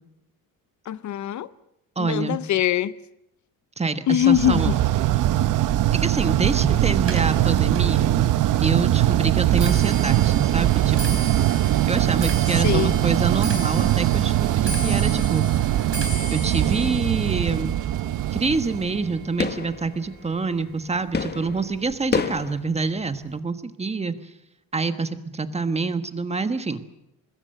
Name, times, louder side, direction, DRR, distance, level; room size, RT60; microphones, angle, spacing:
voice 1, 0.9-1.5 2.0-2.9 4.1-4.7 12.6-13.0, left 11 dB, 50° left, 0.7 m, -22 dB
voice 2, 2.0-2.4 3.8-4.7 6.0-8.3 8.6-11.3 11.9-15.5 16.3-17.8 18.3-24.2 24.7-26.8, right 4 dB, 15° right, 1.3 m, -26 dB
sound 1, 4.3-19.3, right 13 dB, 55° right, 0.8 m, -21 dB
Clock, 7.0-20.3 20.7-21.1 21.9-22.0 22.4-22.7 23.0-23.1, right 4 dB, 35° right, 3.9 m, -35 dB
sound 2, 16.8-22.6, left 5 dB, 25° left, 1.5 m, -31 dB
25.0 x 20.5 x 6.7 m
cardioid pair, 135°, 37 cm